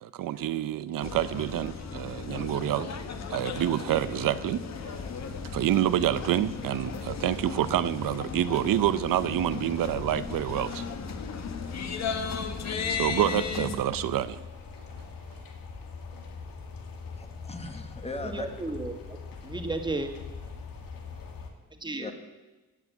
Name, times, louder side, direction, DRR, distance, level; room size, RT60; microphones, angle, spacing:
voice 1, 0.0-2.9 3.3-4.6 5.5-10.8 12.9-14.4, right 12 dB, 75° right, 14 dB, 0.7 m, -27 dB
sound 1, 1.0-13.8, left 5 dB, 50° left, 1.5 m, -36 dB
sound 2, 4.7-21.5, left 5 dB, 80° left, 2.4 m, -43 dB
voice 2, 17.1-18.5 22.0-22.1, left 2 dB, 20° left, 6 dB, 1.4 m, -38 dB
voice 3, 18.2-18.9 19.4-20.1 21.8-22.1, right 2 dB, 15° right, 5 dB, 1.6 m, -33 dB
17.0 x 8.5 x 8.1 m, 1.2 s
cardioid pair, 145°, 34 cm